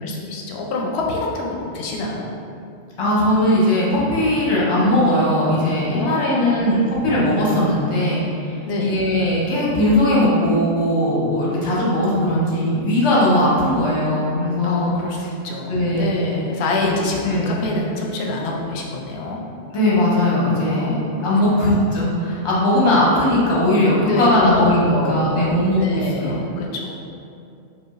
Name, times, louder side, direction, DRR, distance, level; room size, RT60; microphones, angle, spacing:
voice 1, 0.0-2.2 5.9-6.6 8.7-8.9 14.6-19.4 20.7-21.9 22.7-22.8 24.0-26.9, left 2 dB, 65° left, -1 dB, 0.7 m, -26 dB
voice 2, 3.0-14.9 15.7-16.2 16.8-16.9 17.2-17.7 19.7-20.9 21.2-26.4, left 1 dB, 30° left, -6 dB, 0.7 m, -19 dB
4.9 x 2.3 x 2.4 m, 2.5 s
omnidirectional pair, 1.3 m